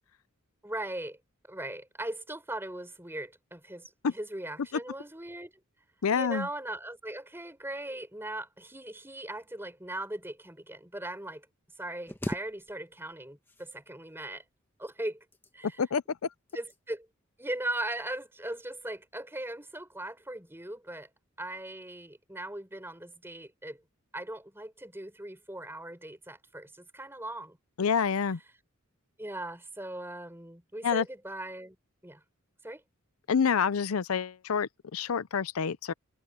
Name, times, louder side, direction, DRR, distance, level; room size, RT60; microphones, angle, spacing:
voice 1, 0.6-1.2 1.5-5.5 6.1-11.5 11.8-14.4 14.8-15.2 15.5-15.8 16.5-17.1 17.4-21.1 21.4-23.8 24.1-27.6 29.2-31.8 32.0-32.2 32.6-32.8, right 1 dB, 10° right, 4.6 m, -39 dB
voice 2, 6.0-6.5 15.8-16.0 27.8-28.4 30.8-31.0 33.3-35.9, left 6 dB, 80° left, 0.5 m, -27 dB
sound 1, 12.1-13.2 13.4-14.2 15.1-15.9 16.5-16.8 17.3-17.5, equal, 10° left, 1.4 m, -40 dB
head